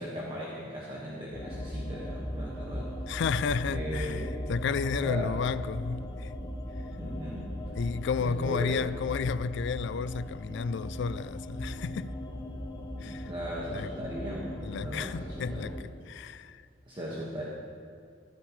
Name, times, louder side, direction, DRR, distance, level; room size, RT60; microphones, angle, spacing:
voice 1, 0.0-2.9 3.7-4.3 5.0-5.4 6.9-7.5 8.2-8.8 13.0-15.7 16.9-17.4, equal, 25° right, 1.6 m, -38 dB
sound 1, 1.3-15.8, equal, 20° left, 0.8 m, -38 dB
voice 2, 3.1-6.3 7.7-12.1 13.0-13.3 13.7-13.9 14.6-16.6, left 5 dB, 65° left, 0.4 m, -32 dB
14.5 x 14.5 x 3.2 m
head